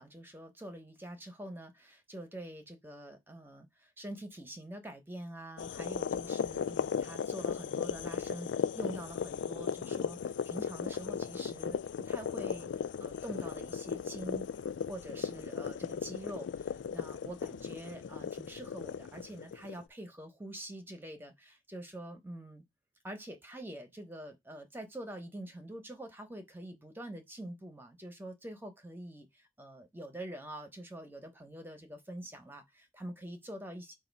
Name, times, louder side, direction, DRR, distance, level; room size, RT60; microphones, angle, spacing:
voice 1, 0.0-10.2 10.4-12.7 13.0-14.5 14.9-22.6 23.0-33.9, right 1 dB, 10° right, 0.9 m, -45 dB
sound 1, 5.6-19.8, left 7 dB, 80° left, 0.3 m, -36 dB
6.9 x 2.7 x 5.3 m
head